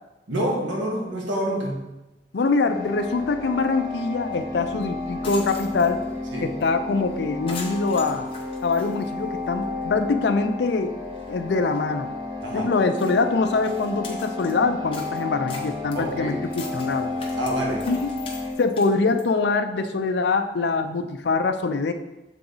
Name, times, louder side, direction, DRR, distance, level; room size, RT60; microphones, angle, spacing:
voice 1, 0.3-1.8 6.3-6.5 12.4-12.7 15.9-16.4 17.3-17.9, equal, 90° right, -1 dB, 1.4 m, -27 dB
voice 2, 2.3-6.0 6.4-8.3 8.6-10.9 11.3-12.1 12.5-17.1 17.8-18.1 18.6-21.9, left 4 dB, 65° left, 7 dB, 0.4 m, -24 dB
sound 1, 2.6-18.5, left 2 dB, 25° right, 2.1 m, -32 dB
sound 2, 4.3-4.4 4.8-4.9 5.1-6.1 6.6-6.7 7.0-7.1 7.5-9.6 10.0-10.1 10.7-10.8 11.0-11.3 11.7-11.8 12.4-12.5 12.9-14.6 14.9-19.3, left 3 dB, 30° left, 0.9 m, -41 dB
7.3 x 3.8 x 3.9 m, 0.99 s
head